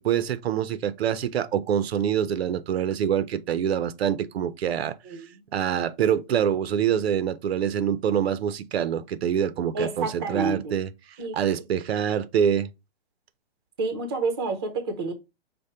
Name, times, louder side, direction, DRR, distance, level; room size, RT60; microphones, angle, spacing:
voice 1, 0.0-5.0 5.5-10.9 11.3-12.7, right 9 dB, 80° right, 0.6 m, -25 dB
voice 2, 9.7-10.7 11.2-11.4 13.8-15.1, right 3 dB, 25° right, 0.6 m, -29 dB
5.1 x 2.1 x 4.2 m
hypercardioid pair, 175°, 31 cm